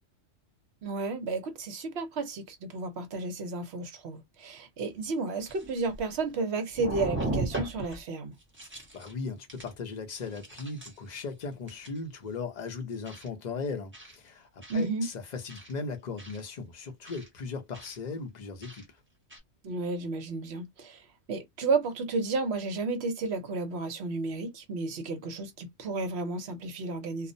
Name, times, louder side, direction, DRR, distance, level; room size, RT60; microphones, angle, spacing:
voice 1, 0.8-8.3 14.7-15.1 19.6-27.3, right 3 dB, 60° right, 0.8 m, -32 dB
sound 1, 4.8-4.9 5.4-6.4 6.7-8.0 8.4-9.1 9.5-9.7 10.1-11.1 11.7-12.0 13.0-13.3 13.9-14.2 14.6-14.8 15.5-15.7 16.2-16.4 17.0-17.3 17.7-18.0 18.6-18.8 19.3-19.4, right 2 dB, 10° right, 0.7 m, -37 dB
voice 2, 8.9-18.9, left 4 dB, 45° left, 0.6 m, -38 dB
2.4 x 2.0 x 2.5 m
omnidirectional pair, 1.3 m